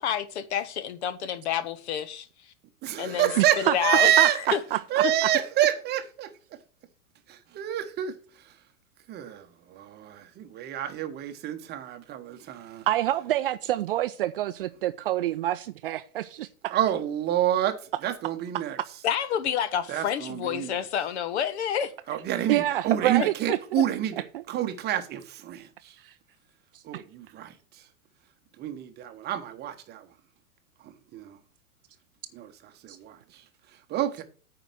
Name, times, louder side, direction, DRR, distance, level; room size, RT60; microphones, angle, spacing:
voice 1, 0.0-2.3 3.0-3.3 3.6-4.1 4.5-4.6 19.0-21.9, left 9 dB, 45° left, 1.2 m, -28 dB
voice 2, 2.8-4.6 4.9-6.3 7.3-8.1 9.1-12.8 16.7-18.8 19.9-20.8 22.1-25.9 26.8-27.5 28.6-30.1 31.1-31.4 32.3-32.5 32.8-33.2 33.9-34.2, right 12 dB, 20° right, 1.0 m, -28 dB
voice 3, 3.4-3.7 4.2-4.3 4.7-5.0 12.9-16.8 22.5-23.6 24.3-24.4 26.9-27.0, right 14 dB, 40° right, 0.6 m, -27 dB
9.0 x 4.9 x 7.7 m
figure-of-eight pair, 100°, 44 cm